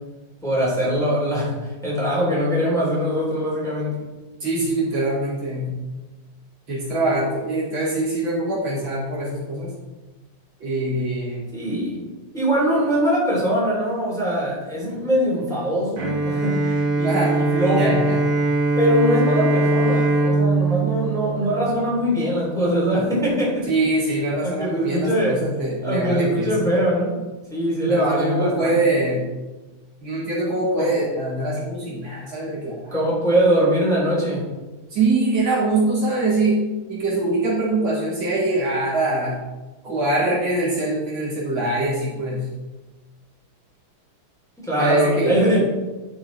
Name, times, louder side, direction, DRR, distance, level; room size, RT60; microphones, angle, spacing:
voice 1, 0.4-4.0 11.5-12.0 12.3-18.0 18.8-23.7 24.4-25.4 25.8-27.1 27.5-28.7 30.8-30.9 32.9-34.5 44.6-45.6, equal, ahead, -6 dB, 3.5 m, -22 dB
voice 2, 4.4-5.8 6.7-9.7 10.6-11.4 17.0-17.4 17.8-18.2 23.7-26.9 27.9-29.3 30.0-32.9 34.9-39.4 39.8-42.5 44.8-45.4, right 2 dB, 70° right, -8 dB, 4.1 m, -23 dB
Bowed string instrument, 16.0-22.1, right 2 dB, 45° right, 1.7 m, -21 dB
12.0 x 6.3 x 4.2 m, 1.2 s
omnidirectional pair, 2.3 m